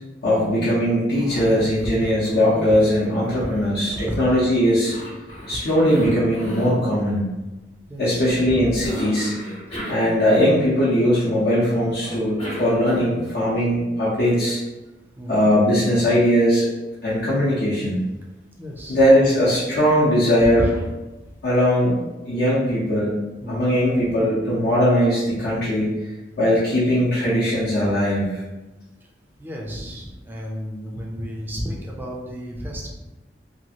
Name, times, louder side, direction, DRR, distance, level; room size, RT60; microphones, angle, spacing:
voice 1, 0.2-4.9 5.5-7.3 8.0-9.3 9.9-14.6 15.3-16.7 17.0-18.0 18.9-20.6 21.4-22.0 22.3-23.2 23.5-26.0 26.4-28.4, equal, 60° left, -9 dB, 0.7 m, -19 dB
Cough, 1.1-2.0 2.2-4.3 4.8-6.8 8.8-10.8 12.0-13.3, equal, 35° left, 1.0 m, -35 dB
voice 2, 1.3-1.7 2.0-2.2 3.4-3.5 3.7-4.2 5.5-5.6 7.9-8.8 15.2-15.5 18.6-19.0 20.4-20.8 21.2-21.3 23.4-23.7 29.4-32.9, equal, 10° right, -2 dB, 0.4 m, -32 dB
2.9 x 2.5 x 2.8 m, 1.1 s
head